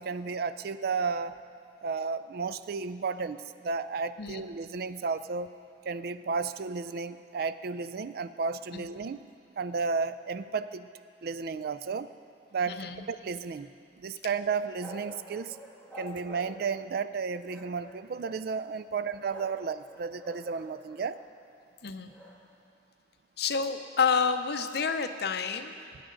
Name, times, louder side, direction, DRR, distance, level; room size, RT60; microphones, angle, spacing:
voice 1, 0.0-1.4 1.8-5.5 5.8-9.2 9.6-10.9 11.2-12.1 12.5-13.7 14.0-15.6 16.0-21.2, right 5 dB, 60° right, 13 dB, 0.4 m, -33 dB
voice 2, 12.7-13.1 21.8-22.1 23.4-25.7, left 5 dB, 65° left, 8 dB, 0.6 m, -29 dB
sound 1, 14.5-16.9 17.5-18.4 19.0-19.6 19.9-21.3 22.1-22.4, left 1 dB, 5° left, 1.7 m, -47 dB
19.0 x 9.1 x 3.9 m, 2.3 s
head